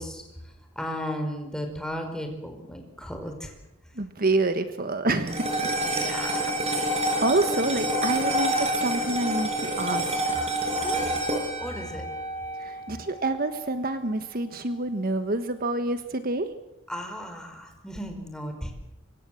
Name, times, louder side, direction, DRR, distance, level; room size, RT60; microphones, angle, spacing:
voice 1, 0.0-3.5 5.8-6.9 10.8-11.3 11.6-12.1 16.9-18.7, equal, 5° left, 4 dB, 5.0 m, -35 dB
voice 2, 3.9-5.5 5.9-6.1 7.2-10.4 12.6-16.5, right 2 dB, 50° right, 9 dB, 1.4 m, -27 dB
sound 1, 5.3-13.8, right 1 dB, 35° right, 7.4 m, -28 dB
25.5 x 23.5 x 7.8 m, 0.89 s
head